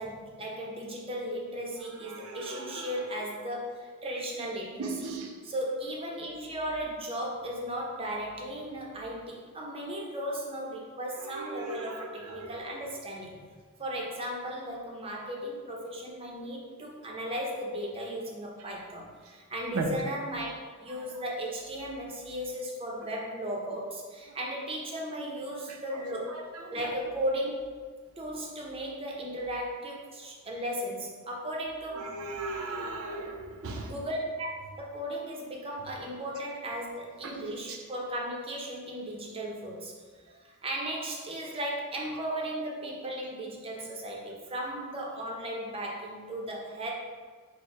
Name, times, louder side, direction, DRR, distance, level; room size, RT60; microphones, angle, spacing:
voice 1, 0.0-5.1 5.4-13.4 13.8-26.4 26.7-27.7 28.2-32.2 33.2-33.3 33.8-34.5 34.8-39.9 40.4-46.9, equal, 25° right, -2 dB, 0.6 m, -36 dB
voice 2, 2.1-2.9 4.8-5.3 11.2-12.6 19.7-19.9 26.3-26.4 26.8-26.9 31.9-33.9 37.2-37.4 37.7-37.8, right 3 dB, 70° right, 2 dB, 0.5 m, -37 dB
4.3 x 2.1 x 4.6 m, 1.5 s
head